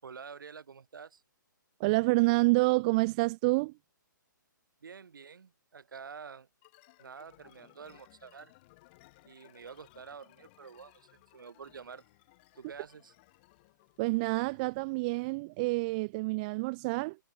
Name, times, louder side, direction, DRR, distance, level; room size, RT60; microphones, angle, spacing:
voice 1, 0.0-1.2 4.8-6.5 7.0-8.5 9.2-12.0 12.5-13.1, right 6 dB, 80° right, 5.6 m, -48 dB
voice 2, 1.8-3.7 14.0-17.2, right 26 dB, 25° right, 0.3 m, -28 dB
sound 1, 6.6-14.9, left 23 dB, 30° left, 6.5 m, -62 dB
hypercardioid pair, 155°, 11 cm